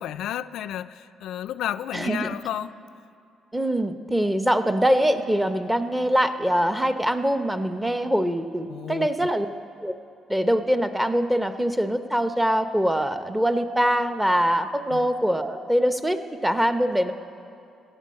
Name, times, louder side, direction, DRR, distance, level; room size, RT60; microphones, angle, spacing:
voice 1, 0.0-2.7 8.7-9.1 14.9-15.1, left 11 dB, 80° left, 12 dB, 0.3 m, -32 dB
voice 2, 1.9-2.4 3.5-9.5 9.8-10.0 10.3-17.1, equal, 10° right, 9 dB, 0.8 m, -23 dB
16.0 x 7.0 x 8.6 m, 2.5 s
cardioid pair, 90°, 0 cm